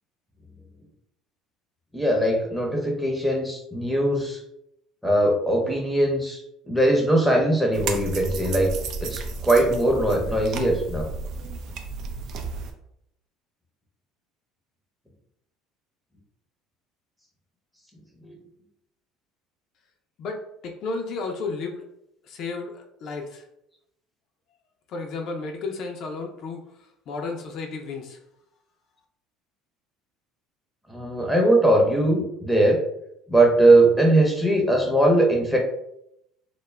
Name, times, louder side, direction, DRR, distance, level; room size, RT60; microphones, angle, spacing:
voice 1, 1.9-4.4 5.0-6.4 6.7-8.7 9.0-11.1 18.2-18.4 30.9-32.8 33.3-35.6, right 1 dB, ahead, 0 dB, 0.7 m, -20 dB
sound 1, 7.7-12.7, right 4 dB, 60° right, 0.4 m, -33 dB
voice 2, 20.2-21.8 22.3-23.4 24.9-26.6 27.1-28.2, left 3 dB, 60° left, 3 dB, 0.4 m, -33 dB
2.2 x 2.0 x 3.2 m, 0.79 s
supercardioid pair, 95°, 0 cm